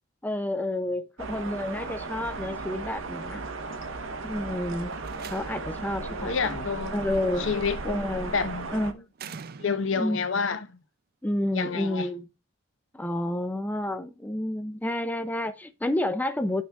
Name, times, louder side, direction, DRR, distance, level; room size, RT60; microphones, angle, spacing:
voice 1, 0.2-3.4 4.2-4.9 5.3-6.3 6.9-7.5 7.8-8.3 8.7-9.0 10.0-10.2 11.2-12.3 12.9-16.6, left 1 dB, 10° left, 0.5 m, -29 dB
sound 1, 1.2-8.9, right 3 dB, 75° right, 1.1 m, -36 dB
Slam, 4.8-5.9 7.4-7.8 9.1-10.1, right 6 dB, 45° right, 0.5 m, -44 dB
voice 2, 6.0-7.0 7.4-8.0 8.3-8.8 9.6-10.8 11.5-12.1, left 5 dB, 65° left, 0.9 m, -29 dB
9.6 x 6.4 x 3.5 m
head